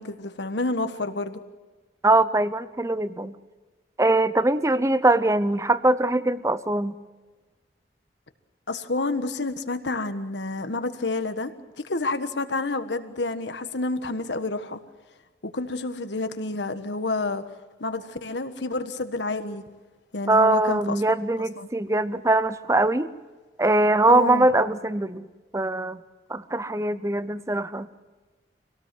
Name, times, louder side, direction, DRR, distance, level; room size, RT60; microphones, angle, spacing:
voice 1, 0.0-1.4 8.7-11.5 11.8-14.8 15.5-17.4 17.8-19.6 20.1-21.0 21.4-21.7 24.1-24.5, left 2 dB, 85° left, 9 dB, 1.4 m, -29 dB
voice 2, 2.0-3.3 4.0-7.0 20.3-23.1 23.6-25.3 25.5-26.0 26.3-27.9, right 2 dB, 15° right, 14 dB, 0.7 m, -22 dB
25.0 x 18.0 x 7.7 m, 1.3 s
head